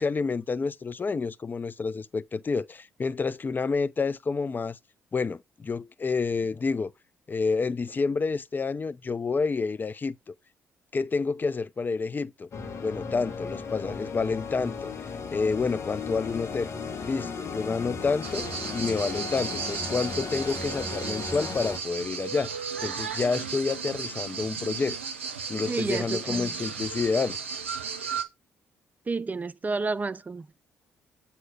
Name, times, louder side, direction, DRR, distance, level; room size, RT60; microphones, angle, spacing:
voice 1, 0.0-4.8 5.1-6.9 7.3-10.3 10.9-12.5 12.8-14.9 15.3-16.7 17.0-18.5 18.7-22.5 22.8-25.0 25.5-27.4, left 4 dB, 30° left, 0.5 m, -29 dB
sound 1, 12.5-21.8, left 5 dB, 45° left, 1.4 m, -36 dB
sound 2, 18.2-28.2, right 6 dB, 90° right, 0.6 m, -35 dB
voice 2, 25.7-26.5 29.1-30.5, right 3 dB, 25° right, 0.5 m, -30 dB
7.8 x 2.8 x 5.7 m
figure-of-eight pair, 45°, 6 cm